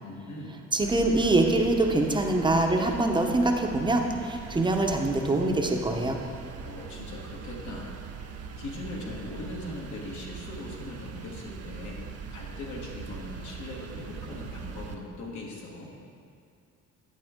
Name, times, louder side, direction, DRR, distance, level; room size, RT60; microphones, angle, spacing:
voice 1, 0.0-0.7 6.6-8.0 8.6-12.0 12.3-15.9, left 2 dB, 70° left, -2 dB, 1.6 m, -40 dB
voice 2, 0.7-6.2, right 2 dB, 15° right, 3 dB, 0.8 m, -24 dB
sound 1, 0.8-14.9, right 6 dB, 55° right, 0.7 m, -41 dB
8.1 x 7.9 x 3.7 m, 2.4 s
cardioid pair, 90°, 30 cm